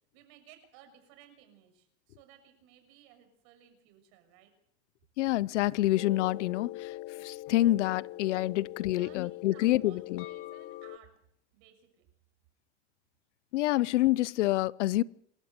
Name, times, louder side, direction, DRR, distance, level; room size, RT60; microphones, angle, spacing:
voice 1, 0.1-4.5 8.9-11.1 11.5-12.0, right 10 dB, 55° right, 6.6 m, -58 dB
voice 2, 5.2-6.9 7.2-10.2 13.5-15.0, left 16 dB, 80° left, 0.8 m, -27 dB
sound 1, 6.0-11.0, left 17 dB, 40° left, 1.4 m, -42 dB
27.5 x 13.5 x 8.2 m
supercardioid pair, 145°, 35 cm